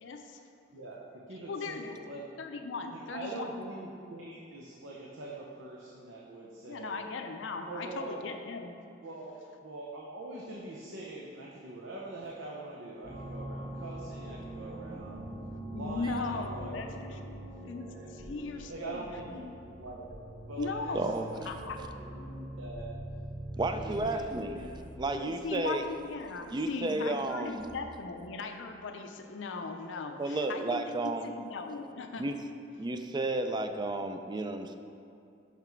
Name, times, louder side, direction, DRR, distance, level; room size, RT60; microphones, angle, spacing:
voice 1, 0.0-0.4 1.5-2.0 2.4-3.6 6.7-8.8 15.7-17.2 17.6-19.0 20.6-21.8 25.1-32.3, left 4 dB, 75° left, 5 dB, 0.5 m, -38 dB
voice 2, 0.7-2.3 2.9-7.0 7.6-8.2 9.0-9.3 9.6-15.3 15.7-17.3 17.7-18.3 18.7-20.0 20.5-22.9 23.7-24.8, right 2 dB, 80° right, -3 dB, 0.7 m, -43 dB
sound 1, 13.0-28.1, right 1 dB, 55° right, 1.2 m, -44 dB
voice 3, 20.9-21.3 23.6-24.5 25.0-25.9 26.5-27.7 30.2-31.3 32.2-32.4 32.8-34.8, right 2 dB, 25° right, 7 dB, 0.4 m, -32 dB
5.9 x 5.8 x 4.5 m, 2.6 s
head